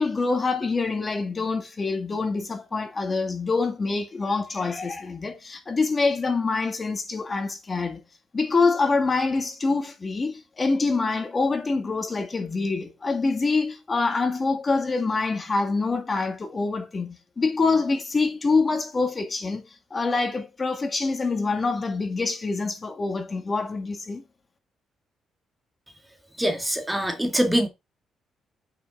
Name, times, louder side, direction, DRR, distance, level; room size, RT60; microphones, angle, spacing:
voice 1, 0.0-8.0 8.3-19.6 19.9-24.2, left 3 dB, 30° left, 1.9 m, -25 dB
voice 2, 26.4-27.7, equal, 5° right, 1.8 m, -23 dB
8.7 x 5.7 x 3.8 m
cardioid pair, 90°, 0 cm